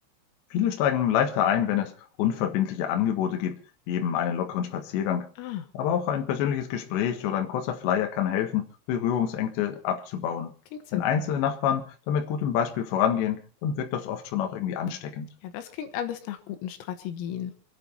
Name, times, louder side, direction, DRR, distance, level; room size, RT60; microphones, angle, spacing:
voice 1, 0.5-1.9 2.2-3.6 3.9-5.3 5.7-10.5 10.9-15.3, left 9 dB, 65° left, 4 dB, 3.5 m, -27 dB
voice 2, 10.7-11.0 15.4-17.6, left 10 dB, 85° left, 8 dB, 4.1 m, -34 dB
27.5 x 10.0 x 4.1 m, 0.36 s
omnidirectional pair, 6.0 m